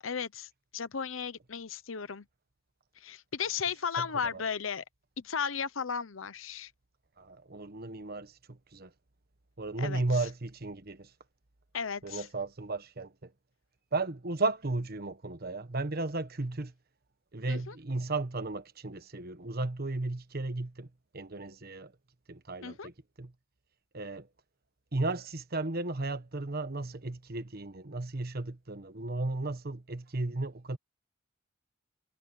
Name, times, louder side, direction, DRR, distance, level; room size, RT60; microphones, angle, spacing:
voice 1, 0.0-2.3 3.0-4.8 5.2-6.7 9.8-10.0 11.7-12.3 17.5-17.7 22.6-22.9, left 6 dB, 85° left, 0.9 m, -35 dB
voice 2, 4.0-4.4 7.2-8.9 9.6-11.1 12.0-13.3 13.9-16.7 17.3-20.9 21.1-21.9 22.3-22.9 23.2-23.3 23.9-24.3 24.9-30.8, right 2 dB, 50° right, 1.3 m, -34 dB
head